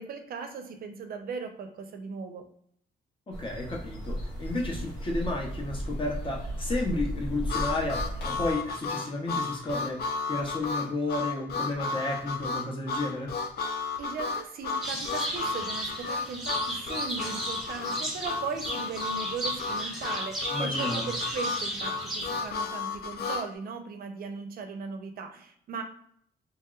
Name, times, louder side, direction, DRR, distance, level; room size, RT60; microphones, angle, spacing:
voice 1, 0.0-2.4 14.0-25.8, right 5 dB, 60° right, 6 dB, 0.5 m, -38 dB
sound 1, 3.3-8.6, equal, 85° left, 1.1 m, -35 dB
voice 2, 3.4-8.0 8.2-13.3 20.5-21.1, left 2 dB, 30° left, 0 dB, 0.7 m, -32 dB
Harmonica, 7.5-23.5, left 4 dB, 70° left, 0.4 m, -33 dB
sound 2, 14.8-22.5, right 1 dB, ahead, 0.9 m, -35 dB
3.0 x 2.9 x 2.3 m, 0.65 s
cardioid pair, 120°, 17 cm